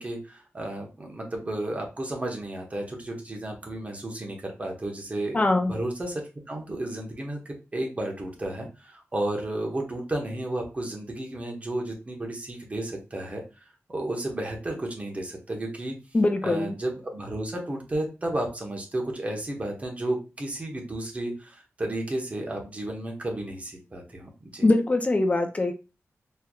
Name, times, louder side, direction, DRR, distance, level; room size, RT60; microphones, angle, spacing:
voice 1, 0.0-13.4 13.9-15.9 16.4-24.7, right 1 dB, 30° right, 1 dB, 1.2 m, -33 dB
voice 2, 5.3-5.7 16.1-16.7 24.6-25.7, left 2 dB, 30° left, 6 dB, 0.6 m, -22 dB
4.4 x 3.2 x 2.4 m, 0.29 s
wide cardioid pair, 130°, 5 cm